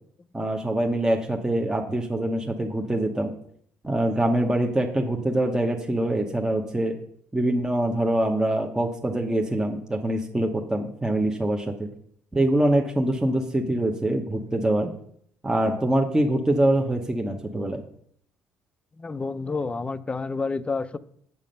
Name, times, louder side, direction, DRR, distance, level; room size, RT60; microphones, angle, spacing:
voice 1, 0.3-3.3 3.8-6.9 7.3-11.9 12.3-14.9 15.4-17.8, right 1 dB, 10° right, 1 dB, 0.9 m, -24 dB
voice 2, 19.0-21.0, left 4 dB, 20° left, 14 dB, 0.5 m, -29 dB
7.6 x 7.2 x 5.3 m, 0.65 s
cardioid pair, 90°, 5 cm